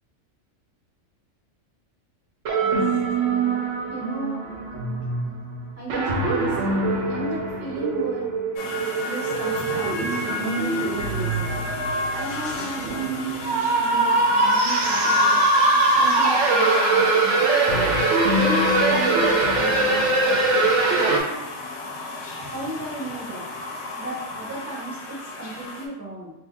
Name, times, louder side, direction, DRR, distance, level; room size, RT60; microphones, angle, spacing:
sound 1, 2.5-21.2, right 3 dB, 65° right, 0.9 m, -22 dB
voice 1, 3.2-4.4 5.7-8.3 9.0-11.6 12.1-13.1 13.7-15.4 15.9-17.6 18.4-20.7 22.4-23.5 24.0-26.3, right 2 dB, 15° right, -6 dB, 0.6 m, -35 dB
sound 2, 8.6-25.9, left 4 dB, 85° left, 1.0 m, -32 dB
2.6 x 2.6 x 3.6 m, 0.92 s
omnidirectional pair, 1.4 m